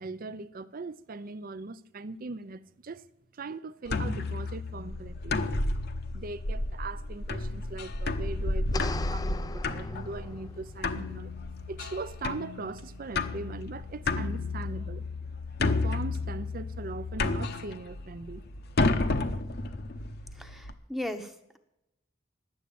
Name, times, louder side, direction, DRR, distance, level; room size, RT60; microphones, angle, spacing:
voice 1, 0.0-3.1 3.3-5.4 6.1-11.3 11.7-15.0 15.6-18.4, right 3 dB, 50° right, 0.6 m, -40 dB
sound 1, 3.9-20.7, left 2 dB, 55° left, 0.9 m, -32 dB
sound 2, 8.7-10.7, left 3 dB, 20° left, 0.4 m, -39 dB
voice 2, 20.4-21.6, left 1 dB, ahead, 0.9 m, -37 dB
11.5 x 8.1 x 8.5 m
head